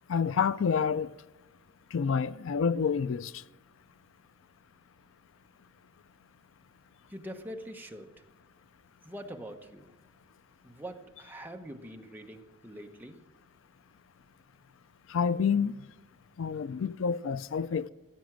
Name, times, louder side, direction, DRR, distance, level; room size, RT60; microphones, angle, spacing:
voice 1, 0.1-1.2 1.9-3.4 15.1-15.8 16.4-17.9, left 6 dB, 65° left, 0.4 m, -28 dB
voice 2, 7.1-8.3 9.0-10.0 10.6-13.3, equal, 10° right, 1.0 m, -44 dB
15.5 x 9.4 x 7.4 m
head